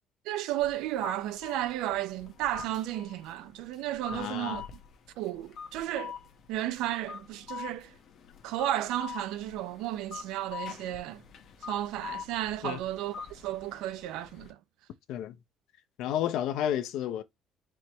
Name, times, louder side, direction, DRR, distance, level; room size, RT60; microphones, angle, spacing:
voice 1, 0.3-4.8 5.2-6.2 6.5-7.9 8.4-11.2 11.7-14.6, right 13 dB, 80° right, 0.5 m, -33 dB
sound 1, 0.6-14.5, left 7 dB, 40° left, 0.9 m, -45 dB
voice 2, 4.1-4.6 12.6-12.8 15.1-15.4 16.0-17.2, left 11 dB, 65° left, 0.6 m, -31 dB
4.5 x 3.0 x 3.4 m
cardioid pair, 175°, 0 cm